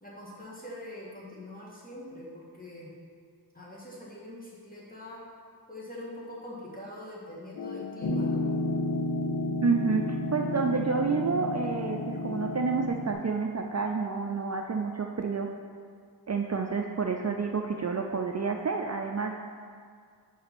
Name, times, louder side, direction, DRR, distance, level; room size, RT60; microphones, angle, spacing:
voice 1, 0.0-2.9 3.5-5.2 5.7-8.5, left 1 dB, 20° left, -5 dB, 1.8 m, -43 dB
sound 1, 7.6-12.9, left 5 dB, 55° left, 0.5 m, -39 dB
Piano, 8.0-13.1, left 1 dB, 80° left, 0.9 m, -32 dB
voice 2, 9.6-15.5 16.3-19.4, right 4 dB, 40° right, 3 dB, 0.4 m, -29 dB
5.6 x 5.3 x 5.9 m, 2.1 s
wide cardioid pair, 50°, 40 cm